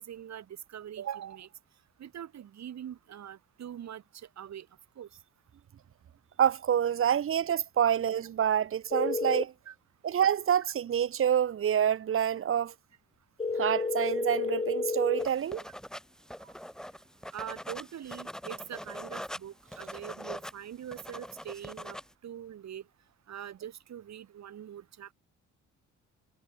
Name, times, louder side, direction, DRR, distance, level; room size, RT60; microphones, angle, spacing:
voice 1, 0.0-1.5 2.0-4.7 5.0-5.1 9.7-9.8 17.3-22.0 22.2-22.8 23.3-25.1, right 10 dB, 60° right, 3.9 m, -43 dB
voice 2, 6.4-9.5 10.0-12.7 13.6-15.6, right 9 dB, 45° right, 0.8 m, -27 dB
sound 1, 8.9-9.4 13.4-15.3, left 4 dB, 20° left, 1.0 m, -30 dB
sound 2, 15.2-22.1, equal, ahead, 2.0 m, -43 dB
cardioid pair, 90°, 30 cm